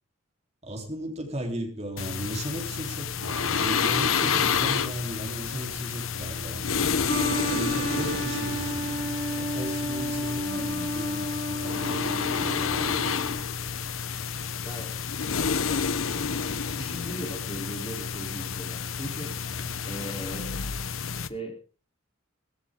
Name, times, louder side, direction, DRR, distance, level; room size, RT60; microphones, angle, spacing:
voice 1, 0.6-6.9 7.5-9.1 9.4-13.0 19.6-19.7, equal, 30° right, 2 dB, 3.7 m, -36 dB
sound 1, 2.0-21.3, left 6 dB, 80° left, 1.0 m, -29 dB
sound 2, 7.1-13.4, equal, 55° right, 2.5 m, -32 dB
voice 2, 10.4-11.0 14.6-15.0 16.7-19.3 19.8-20.5 21.3-21.6, right 1 dB, 30° left, 2 dB, 3.7 m, -38 dB
18.0 x 15.0 x 3.8 m, 0.36 s
head